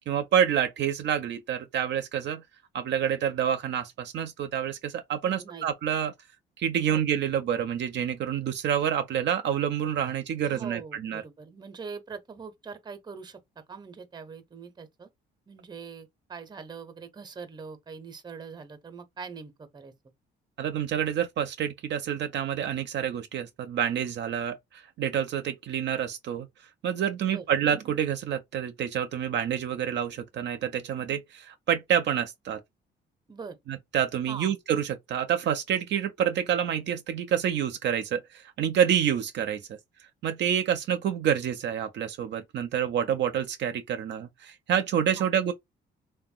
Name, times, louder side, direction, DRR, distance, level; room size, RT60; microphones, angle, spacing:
voice 1, 0.0-2.4 2.7-6.1 6.6-11.2 20.6-26.5 26.8-32.6 33.7-39.7 40.0-45.5, right 9 dB, 65° right, 0.4 m, -28 dB
voice 2, 5.2-5.7 6.9-7.0 10.4-15.1 15.5-19.9 27.3-27.4 33.3-33.6 34.3-34.5 45.2-45.3, right 5 dB, 20° right, 0.6 m, -42 dB
2.9 x 2.1 x 2.4 m
cardioid pair, 90°, 20 cm